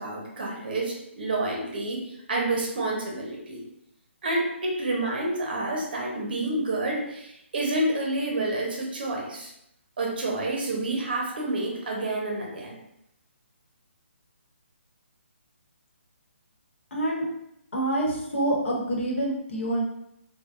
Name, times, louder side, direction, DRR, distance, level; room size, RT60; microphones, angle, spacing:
voice 1, 0.0-3.6 4.2-9.5 10.0-12.8, right 2 dB, 45° right, -1 dB, 0.7 m, -29 dB
voice 2, 16.9-17.2 17.7-19.8, right 1 dB, 75° left, -2 dB, 1.0 m, -26 dB
3.3 x 2.1 x 2.4 m, 0.79 s
hypercardioid pair, 170°, 7 cm